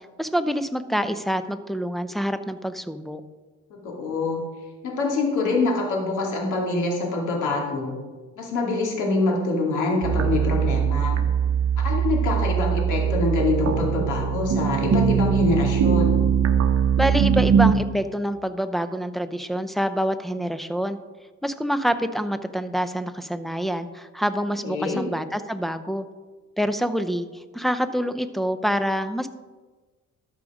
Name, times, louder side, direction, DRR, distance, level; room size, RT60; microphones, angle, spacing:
voice 1, 0.2-3.2 17.0-21.0 21.4-26.1 26.6-29.3, equal, ahead, 11 dB, 0.5 m, -26 dB
voice 2, 3.7-4.4 4.8-8.0 8.4-11.2 11.8-16.2 24.6-25.0, left 3 dB, 80° left, -1 dB, 2.6 m, -25 dB
sound 1, 10.0-17.7, right 8 dB, 55° right, 0.8 m, -21 dB
12.5 x 5.0 x 4.9 m, 1.3 s
cardioid pair, 90°, 30 cm